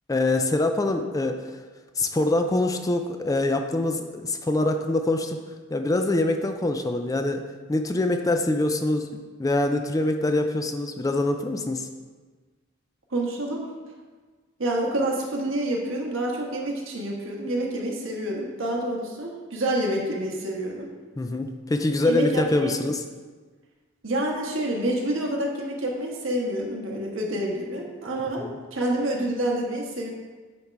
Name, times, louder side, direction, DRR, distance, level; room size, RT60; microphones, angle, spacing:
voice 1, 0.1-1.5 2.0-5.4 5.7-7.4 7.7-11.9 21.2-23.0 28.4-28.5, left 2 dB, 15° left, 6 dB, 0.4 m, -24 dB
voice 2, 13.1-13.7 14.6-20.9 22.1-22.7 24.0-30.1, right 1 dB, 75° right, -1 dB, 1.3 m, -28 dB
9.5 x 3.6 x 4.5 m, 1.4 s
head